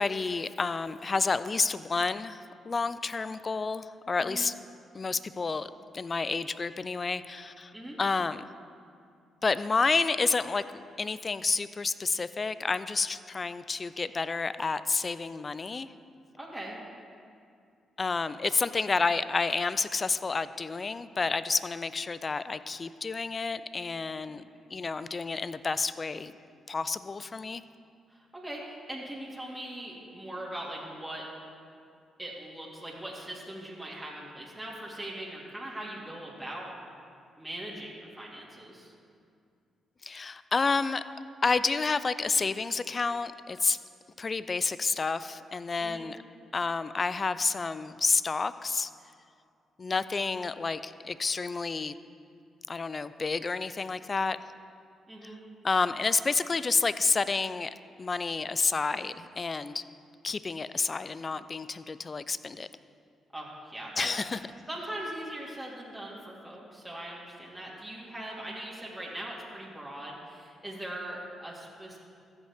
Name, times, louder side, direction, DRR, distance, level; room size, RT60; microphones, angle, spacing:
voice 1, 0.0-4.5 4.9-7.7 8.0-8.4 9.4-15.9 18.0-26.3 26.7-27.6 40.0-41.0 41.4-43.8 44.2-46.2 46.5-48.9 49.8-52.0 52.7-54.4 55.6-57.7 58.0-59.8 60.2-62.7 64.0-64.4, left 4 dB, 40° left, 14 dB, 0.4 m, -30 dB
voice 2, 16.4-16.8 24.3-24.5 28.1-31.3 32.2-36.7 37.4-38.9 45.8-46.1 55.1-55.4 63.3-64.1 64.7-72.0, right 1 dB, 10° right, -5 dB, 2.3 m, -40 dB
15.0 x 6.3 x 3.6 m, 2.3 s
hypercardioid pair, 45°, 0 cm